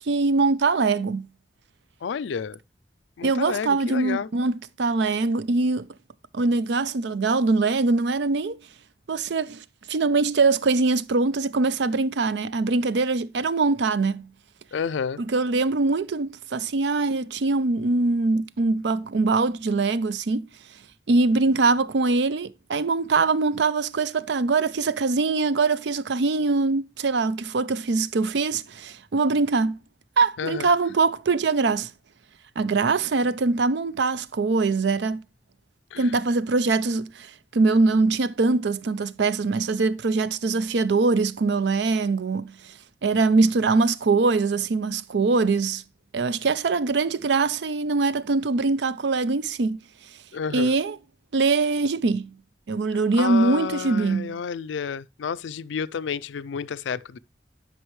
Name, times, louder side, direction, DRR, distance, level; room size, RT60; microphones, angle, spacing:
voice 1, 0.1-1.3 3.2-5.9 6.3-8.6 9.1-14.3 15.2-20.5 21.1-29.8 30.2-31.9 32.6-35.2 36.0-42.7 43.0-45.8 46.1-49.8 50.5-51.0 51.3-52.3 52.7-54.4, right 3 dB, 70° right, 0.5 m, -23 dB
voice 2, 2.0-2.6 3.2-4.3 14.7-15.2 30.4-30.7 35.9-36.1 50.3-50.8 53.2-57.2, left 6 dB, 80° left, 0.4 m, -30 dB
11.0 x 5.4 x 3.1 m
head